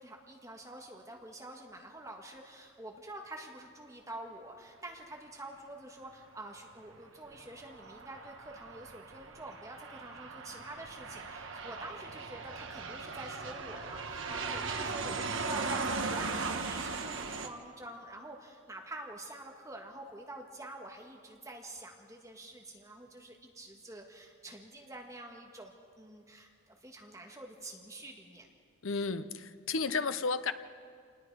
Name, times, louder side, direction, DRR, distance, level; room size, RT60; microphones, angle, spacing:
voice 1, 0.0-25.7 26.0-28.5, right 1 dB, 15° right, 1 dB, 1.5 m, -47 dB
Aircraft, 7.3-17.5, right 4 dB, 60° right, 1.3 m, -38 dB
voice 2, 28.8-30.5, left 4 dB, 65° left, 12 dB, 0.7 m, -32 dB
28.0 x 19.5 x 4.8 m, 2.1 s
head